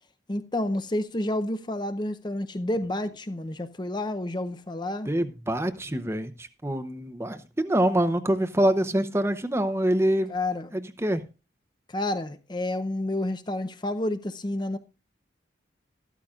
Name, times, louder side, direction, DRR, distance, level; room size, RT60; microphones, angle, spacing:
voice 1, 0.3-5.1 10.3-10.7 11.9-14.8, left 1 dB, 25° left, 0.6 m, -29 dB
voice 2, 5.1-10.3 10.7-11.2, right 1 dB, 15° right, 0.7 m, -25 dB
13.0 x 13.0 x 2.4 m
head